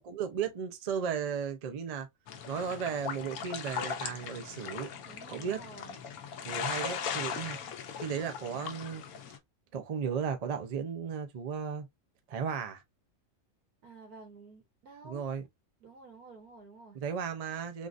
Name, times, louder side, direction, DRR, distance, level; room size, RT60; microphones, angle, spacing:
voice 1, 0.0-2.1 2.5-4.9 5.3-5.6 6.4-7.6 8.0-9.0 9.7-11.9 12.3-12.8 15.0-15.5 16.9-17.9, right 7 dB, 65° right, 0.3 m, -35 dB
sound 1, 2.3-9.4, left 7 dB, 80° left, 1.1 m, -39 dB
voice 2, 5.1-6.0 13.8-15.2 15.8-17.0, right 3 dB, 85° right, 1.7 m, -51 dB
3.7 x 2.5 x 2.4 m
omnidirectional pair, 1.5 m